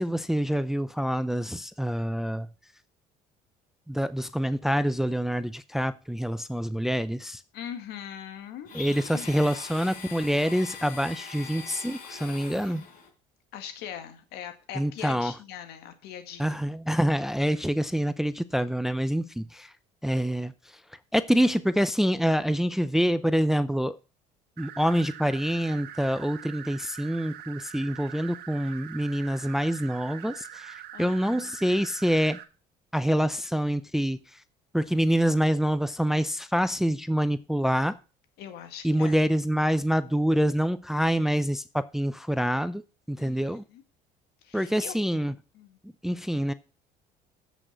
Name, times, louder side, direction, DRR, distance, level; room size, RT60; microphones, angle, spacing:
voice 1, 0.0-2.5 3.9-7.4 8.7-12.8 14.7-15.3 16.4-19.7 20.0-20.5 21.1-24.0 24.6-32.4 32.9-34.2 34.7-37.9 38.8-42.8 43.1-43.6 44.5-45.3 46.0-46.5, equal, ahead, 0.5 m, -26 dB
voice 2, 7.5-8.7 9.1-9.5 13.5-16.6 30.9-31.2 38.4-39.2 43.2-43.8 44.4-44.9 45.5-45.8, left 9 dB, 75° left, 2.0 m, -41 dB
Domestic sounds home sounds, 8.7-13.1, left 5 dB, 55° left, 4.4 m, -42 dB
sound 1, 24.6-32.4, right 11 dB, 70° right, 1.5 m, -44 dB
7.8 x 6.3 x 6.7 m
cardioid pair, 100°, 17 cm